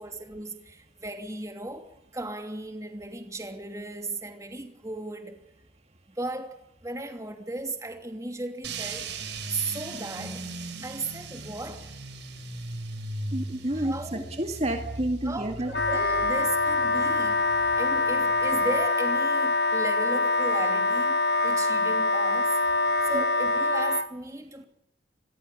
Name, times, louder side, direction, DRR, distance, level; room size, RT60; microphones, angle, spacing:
voice 1, 0.0-5.4 6.1-9.1 9.5-10.5 10.8-11.9 13.8-14.4 15.2-17.4 17.8-22.6 23.0-24.6, right 2 dB, 15° right, 2.8 m, -36 dB
sound 1, 8.6-18.9, right 2 dB, 75° right, 5.8 m, -39 dB
voice 2, 13.3-15.7 23.1-23.2, right 1 dB, 35° right, 2.1 m, -30 dB
Wind instrument woodwind instrument, 15.7-24.1, left 2 dB, 65° left, 1.5 m, -24 dB
26.5 x 22.0 x 7.1 m
head